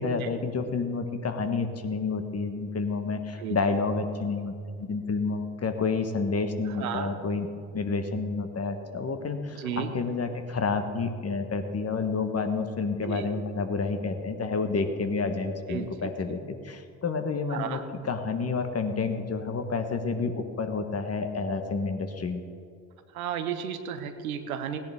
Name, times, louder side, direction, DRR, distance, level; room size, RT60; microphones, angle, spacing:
voice 1, 0.0-7.5 7.7-22.4, left 4 dB, 35° left, 7 dB, 1.4 m, -29 dB
voice 2, 6.8-7.1 9.6-9.9 13.0-13.3 15.7-16.1 17.5-17.8 23.1-24.8, right 8 dB, 90° right, 8 dB, 0.9 m, -33 dB
17.0 x 10.0 x 3.6 m, 2.3 s
hypercardioid pair, 50°, 41 cm